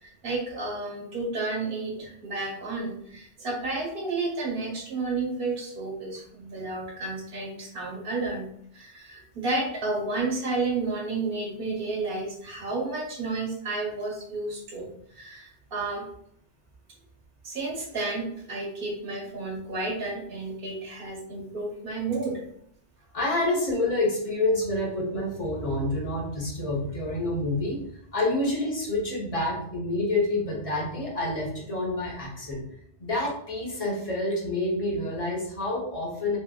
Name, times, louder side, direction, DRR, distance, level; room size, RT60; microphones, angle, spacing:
voice 1, 0.0-8.5 8.7-16.0 17.4-22.4, right 3 dB, 55° right, -1 dB, 1.0 m, -31 dB
voice 2, 23.1-27.8 28.1-32.6 33.0-36.4, left 2 dB, 35° left, -4 dB, 0.8 m, -28 dB
2.9 x 2.4 x 2.3 m, 0.70 s
omnidirectional pair, 1.2 m